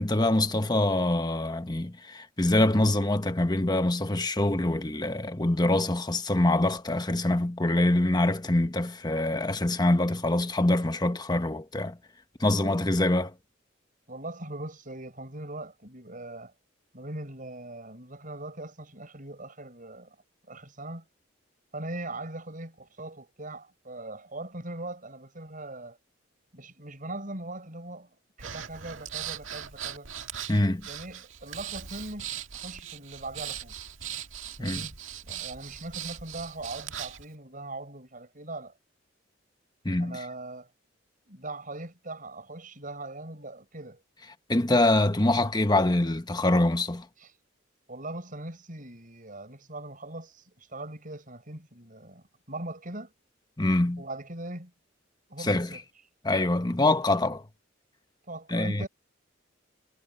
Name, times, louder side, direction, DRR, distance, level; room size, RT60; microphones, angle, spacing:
voice 1, 0.0-12.0 12.4-13.3 30.5-30.8 34.6-34.9 39.8-40.2 44.5-47.1 53.6-54.0 55.4-55.8 56.2-57.4 58.5-58.9, left 1 dB, 20° left, 1.2 m, -25 dB
voice 2, 14.1-16.5 16.9-20.2 20.5-21.0 21.7-26.0 26.5-28.1 28.4-30.1 30.9-33.7 34.6-35.0 35.2-38.7 40.0-40.7 41.3-44.0 47.2-47.3 47.9-53.1 54.0-54.7 55.3-55.8 58.3-58.9, right 2 dB, 45° right, 7.6 m, -40 dB
Breathing, 28.4-37.2, right 10 dB, 85° right, 1.9 m, -39 dB
head